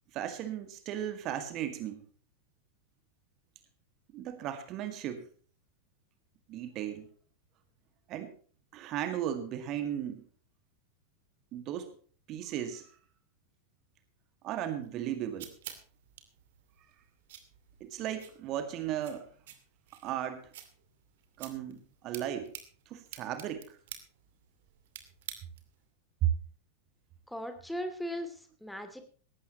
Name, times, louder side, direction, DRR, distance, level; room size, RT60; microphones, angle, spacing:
voice 1, 0.1-2.0 4.1-5.3 6.5-7.1 8.1-8.3 8.7-10.2 11.5-11.9 12.3-12.9 14.4-15.5 17.8-19.3 20.0-20.5 21.4-22.5 22.9-23.8 26.2-26.3, right 11 dB, 35° right, 8 dB, 1.9 m, -35 dB
sound 1, 14.8-25.8, right 10 dB, 55° right, 2.5 m, -50 dB
voice 2, 27.3-29.0, equal, ahead, 7 dB, 2.6 m, -38 dB
18.5 x 15.5 x 3.0 m, 0.43 s
figure-of-eight pair, 90°, 0 cm